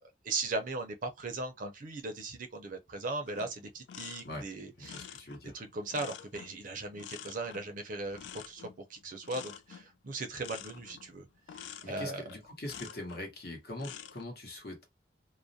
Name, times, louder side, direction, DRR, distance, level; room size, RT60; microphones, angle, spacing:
voice 1, 0.2-5.1 5.5-11.3 11.5-12.2, right 2 dB, 50° right, 0.5 m, -38 dB
sound 1, 3.3-13.3 13.7-14.2, left 9 dB, 80° left, 0.3 m, -48 dB
voice 2, 4.8-5.6 11.8-14.8, left 1 dB, 60° left, 0.9 m, -42 dB
2.3 x 2.0 x 2.6 m
head